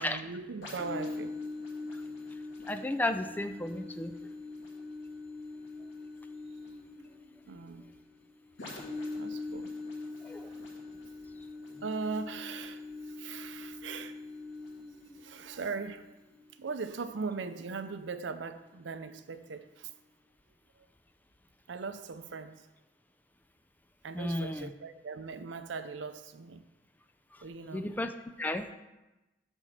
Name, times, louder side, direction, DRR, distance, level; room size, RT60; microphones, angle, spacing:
voice 1, 0.0-1.3 7.5-7.9 9.2-9.7 10.4-10.6 11.8-12.8 13.1-14.2 15.2-16.1 16.6-19.9 21.7-22.7 24.0-26.7 27.4-27.9, right 4 dB, 85° right, 0.5 m, -39 dB
sound 1, 0.6-18.1 18.7-18.8, left 3 dB, 90° left, 2.3 m, -43 dB
voice 2, 2.7-4.2 10.2-10.5 24.1-24.7 27.7-28.1 28.4-28.7, left 1 dB, 10° left, 0.3 m, -33 dB
9.0 x 4.5 x 5.8 m
head